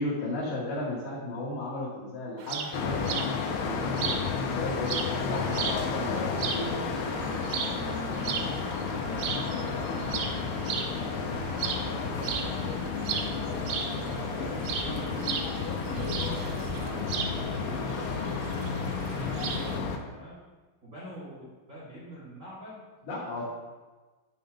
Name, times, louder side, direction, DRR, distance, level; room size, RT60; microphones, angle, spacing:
voice 1, 0.0-3.2 3.9-5.0 5.3-6.2 6.5-6.6 15.9-16.6 23.1-23.5, left 2 dB, 60° left, -7 dB, 3.7 m, -34 dB
sound 1, 2.4-19.8, right 6 dB, 80° right, 2.9 m, -37 dB
sound 2, 2.7-20.0, left 5 dB, 80° left, 2.7 m, -32 dB
voice 2, 5.2-12.4 12.8-15.2 15.7-20.4 20.8-22.9, equal, 35° right, -8 dB, 1.2 m, -45 dB
7.7 x 3.6 x 6.5 m, 1.3 s
omnidirectional pair, 5.1 m